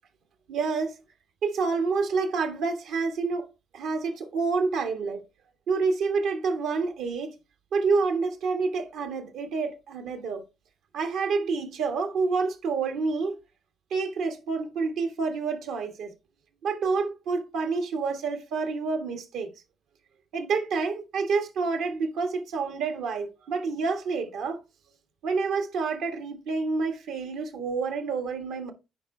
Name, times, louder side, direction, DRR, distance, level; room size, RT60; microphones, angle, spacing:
voice 1, 0.5-1.0 1.4-3.5 3.7-5.2 5.7-7.3 7.7-10.4 10.9-13.3 13.9-16.1 16.6-19.5 20.3-24.6 25.2-28.7, right 4 dB, 85° right, 1.5 m, -28 dB
10.0 x 4.5 x 3.2 m
cardioid pair, 90°, 0 cm